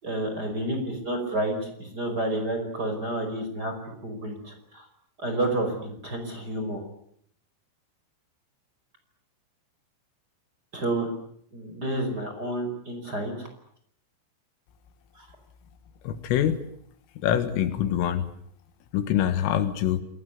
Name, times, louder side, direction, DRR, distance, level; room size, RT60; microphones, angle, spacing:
voice 1, 0.0-4.8 5.2-6.8 10.7-11.1 11.5-13.5 15.1-15.3, right 1 dB, 20° right, 6 dB, 5.3 m, -30 dB
voice 2, 16.1-16.7 17.2-18.3 18.9-20.0, left 10 dB, 80° left, 11 dB, 4.1 m, -25 dB
27.5 x 19.5 x 9.6 m, 0.68 s
omnidirectional pair, 5.9 m